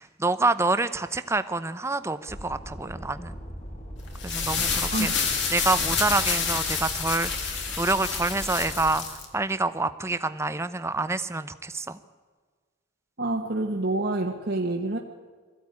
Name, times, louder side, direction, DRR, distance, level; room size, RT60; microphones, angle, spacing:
voice 1, 0.0-3.3 4.2-5.1 5.5-12.0, right 3 dB, 15° right, 12 dB, 0.7 m, -27 dB
sound 1, 2.3-9.0, equal, 35° left, 3.0 m, -40 dB
sound 2, 4.1-9.2, left 5 dB, 60° left, 3.2 m, -28 dB
voice 2, 13.2-15.0, right 2 dB, 50° right, 0 dB, 1.4 m, -27 dB
21.5 x 15.0 x 9.6 m, 1.6 s
head